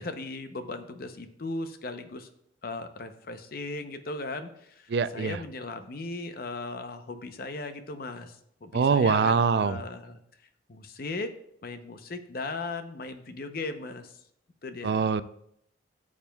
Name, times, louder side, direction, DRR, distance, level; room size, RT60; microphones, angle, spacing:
voice 1, 0.0-2.3 2.6-10.2 10.7-11.3 11.6-14.1 14.6-15.1, left 3 dB, 50° left, 8 dB, 0.7 m, -37 dB
voice 2, 4.9-5.4 8.7-9.8 14.8-15.2, right 5 dB, 60° right, 14 dB, 0.4 m, -23 dB
13.5 x 7.3 x 2.3 m, 0.72 s
head